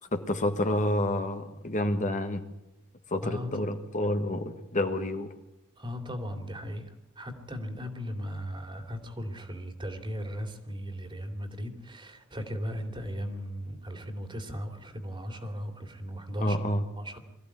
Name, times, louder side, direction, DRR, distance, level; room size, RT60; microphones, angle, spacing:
voice 1, 0.1-2.4 3.1-5.3 16.4-16.8, left 1 dB, 35° left, 6 dB, 1.5 m, -29 dB
voice 2, 3.2-3.6 5.8-16.6 17.0-17.2, equal, 20° right, 7 dB, 2.7 m, -37 dB
22.5 x 15.0 x 9.8 m, 0.88 s
head